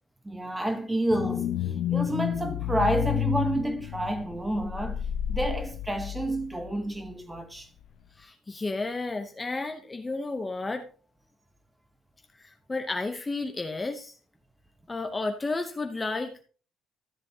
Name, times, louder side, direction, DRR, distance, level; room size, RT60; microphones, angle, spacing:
voice 1, 0.2-1.5 1.9-5.0 5.3-7.7, right 1 dB, 10° right, 1.1 m, -29 dB
sound 1, 1.1-6.8 7.1-7.2, left 11 dB, 65° left, 0.5 m, -31 dB
voice 2, 8.2-10.9 12.4-14.2 14.9-16.4, left 3 dB, 15° left, 0.7 m, -32 dB
13.5 x 7.6 x 2.8 m
cardioid pair, 155°, 0 cm